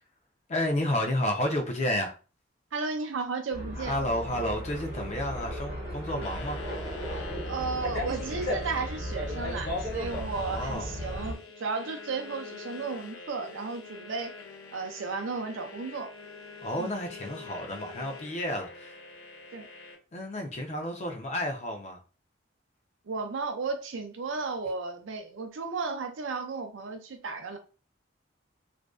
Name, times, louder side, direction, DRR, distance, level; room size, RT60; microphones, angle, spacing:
voice 1, 0.5-2.1 3.8-6.6 10.3-10.9 16.6-19.0 20.1-22.0, left 1 dB, 35° left, 0.4 m, -31 dB
voice 2, 2.7-4.0 7.5-14.3 14.7-16.1 16.8-16.9 19.5-19.7 23.1-27.6, right 4 dB, 80° right, 0.5 m, -34 dB
sound 1, 3.5-11.3, equal, 55° left, 1.0 m, -35 dB
sound 2, 6.2-19.9, left 4 dB, 90° left, 0.5 m, -45 dB
2.5 x 2.1 x 2.2 m
head